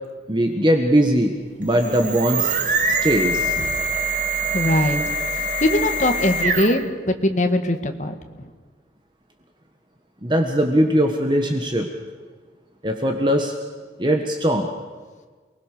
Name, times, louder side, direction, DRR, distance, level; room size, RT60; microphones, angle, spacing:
voice 1, 0.3-2.5 2.9-3.6 10.2-11.9 12.8-13.5 14.0-14.7, equal, 25° right, 3 dB, 1.5 m, -20 dB
sound 1, 1.6-6.9, right 2 dB, 45° right, 2.1 m, -24 dB
voice 2, 4.5-5.0 5.6-8.5, left 1 dB, 45° left, 6 dB, 1.8 m, -21 dB
28.5 x 20.0 x 6.8 m, 1.5 s
head